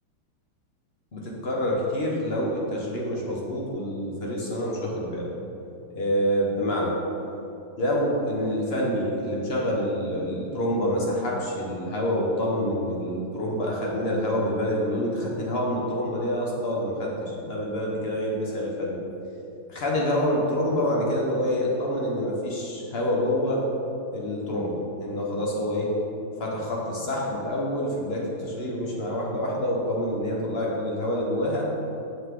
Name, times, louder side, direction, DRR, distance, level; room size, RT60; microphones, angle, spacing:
voice 1, 1.1-5.3 5.9-6.9 7.8-19.1 19.7-23.6 24.1-25.9 26.4-31.7, equal, 40° left, -3 dB, 1.0 m, -27 dB
8.0 x 5.8 x 3.7 m, 2.9 s
omnidirectional pair, 2.2 m